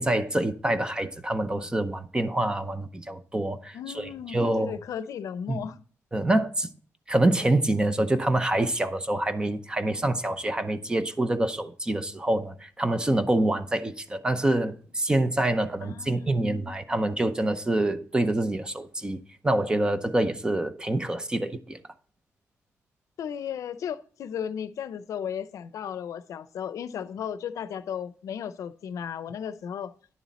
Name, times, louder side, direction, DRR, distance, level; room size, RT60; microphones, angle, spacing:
voice 1, 0.0-4.8 5.5-5.7 6.1-6.7 7.1-19.2 19.4-21.8, right 1 dB, 15° right, 0.7 m, -26 dB
voice 2, 3.7-5.8 15.8-16.8 23.2-29.9, left 8 dB, 75° left, 0.6 m, -35 dB
10.5 x 7.2 x 4.1 m
cardioid pair, 130°, 5 cm